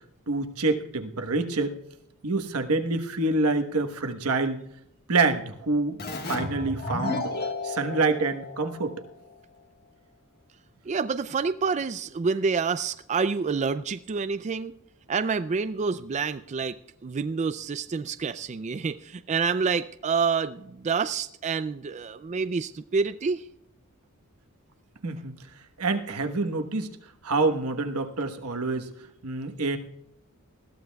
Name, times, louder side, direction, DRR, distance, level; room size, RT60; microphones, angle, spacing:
voice 1, 0.3-1.7 2.2-4.6 5.1-7.3 7.6-8.9 25.0-25.3 25.8-26.9 27.2-28.9 29.2-29.8, right 3 dB, 85° right, 7 dB, 1.2 m, -27 dB
Keyboard (musical), 6.0-9.4, left 2 dB, 45° left, 1.5 m, -33 dB
voice 2, 10.9-14.7 15.1-16.8 17.0-23.4, right 5 dB, 30° right, 12 dB, 0.3 m, -28 dB
20.5 x 14.5 x 2.3 m, 0.77 s
head